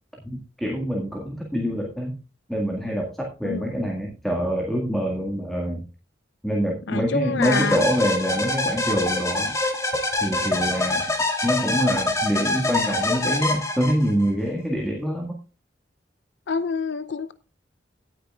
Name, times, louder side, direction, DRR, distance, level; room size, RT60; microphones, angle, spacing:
voice 1, 0.2-2.2 2.5-5.8 6.4-9.5 10.2-11.0 11.4-15.3, equal, ahead, 1.8 m, -25 dB
voice 2, 3.4-3.8 6.9-7.8 16.5-17.3, left 4 dB, 75° left, 0.6 m, -27 dB
sound 1, 7.4-14.3, left 2 dB, 15° left, 2.2 m, -25 dB
17.0 x 9.2 x 2.4 m
head